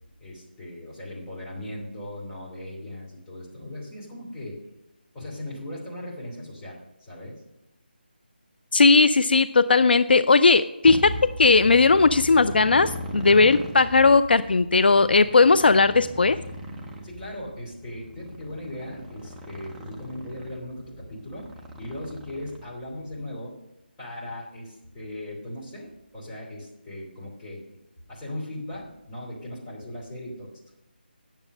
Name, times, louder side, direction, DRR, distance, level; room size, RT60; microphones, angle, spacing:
voice 1, 0.2-4.6 5.1-7.3 11.0-11.3 13.3-13.5 17.0-21.5 21.8-23.6 24.0-27.6 28.1-30.6, left 1 dB, 10° left, -6 dB, 2.9 m, -38 dB
voice 2, 8.7-11.0 11.4-16.4, left 4 dB, 65° left, 13 dB, 0.4 m, -17 dB
Motorcycle, 10.8-22.9, equal, 5° right, 0.6 m, -39 dB
9.2 x 7.1 x 6.4 m, 0.93 s
figure-of-eight pair, 165°, 6 cm